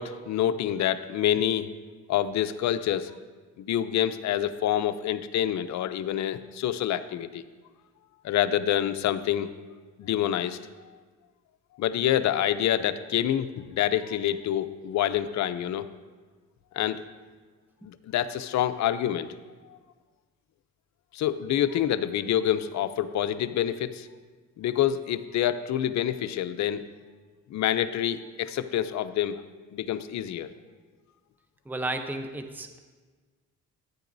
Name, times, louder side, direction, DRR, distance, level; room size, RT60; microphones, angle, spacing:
voice 1, 0.0-1.7 2.1-3.1 3.6-7.4 8.2-9.5 10.0-10.6 11.8-15.9 16.7-17.0 17.8-19.3 21.1-24.1 24.6-26.8 27.5-29.4 29.7-30.5, left 11 dB, 65° left, 11 dB, 0.6 m, -27 dB
voice 2, 31.7-32.8, right 2 dB, 5° right, 6 dB, 0.7 m, -33 dB
13.5 x 9.4 x 2.6 m, 1.4 s
cardioid pair, 90°, 30 cm